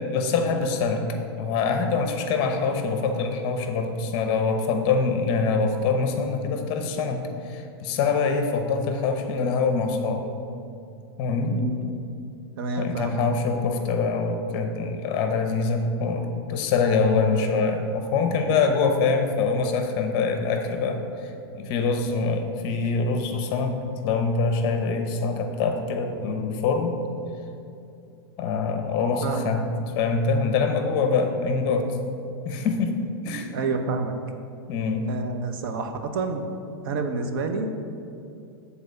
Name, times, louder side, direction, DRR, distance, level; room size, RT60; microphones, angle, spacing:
voice 1, 0.1-1.1 1.4-10.2 11.2-11.6 12.8-23.8 24.0-27.0 28.4-29.6 29.9-31.9 32.4-33.5 34.7-35.1, left 4 dB, 35° left, 5 dB, 0.8 m, -24 dB
voice 2, 11.5-12.0 12.6-13.2 29.2-29.5 33.5-34.2 35.1-36.4 36.8-37.7, right 3 dB, 55° right, 5 dB, 0.8 m, -28 dB
7.8 x 4.1 x 6.8 m, 2.6 s
supercardioid pair, 155°, 13 cm